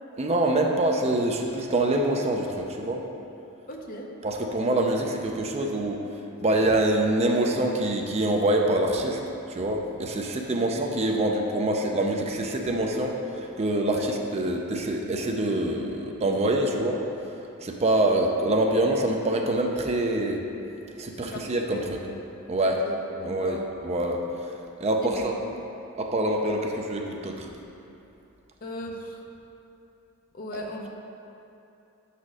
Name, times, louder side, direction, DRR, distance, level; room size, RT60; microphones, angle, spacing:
voice 1, 0.2-3.1 4.2-6.1 6.4-9.2 9.5-17.0 17.6-20.4 21.0-22.0 22.5-22.8 23.2-25.4 26.0-27.5, right 1 dB, 30° right, 2 dB, 0.5 m, -25 dB
voice 2, 3.7-4.1 13.8-14.0 21.1-21.9 22.6-22.9 23.2-23.6 25.0-25.2 25.5-25.6 28.6-29.2 30.3-30.9, left 1 dB, 45° left, 1 dB, 0.7 m, -38 dB
5.9 x 4.2 x 6.3 m, 2.8 s
head